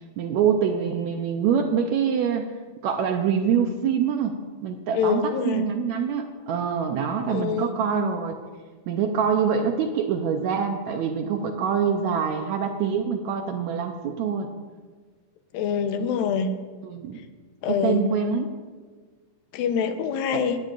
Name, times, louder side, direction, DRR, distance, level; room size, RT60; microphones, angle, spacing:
voice 1, 0.2-2.5 2.8-4.4 4.6-8.4 8.9-14.5 16.8-17.2 17.7-18.5 20.3-20.4, right 7 dB, 80° right, 5 dB, 1.6 m, -25 dB
voice 2, 4.9-5.7 7.2-7.7 15.5-16.5 17.6-18.0 19.5-20.6, left 6 dB, 90° left, 8 dB, 2.6 m, -25 dB
18.5 x 13.0 x 2.5 m, 1.5 s
omnidirectional pair, 4.0 m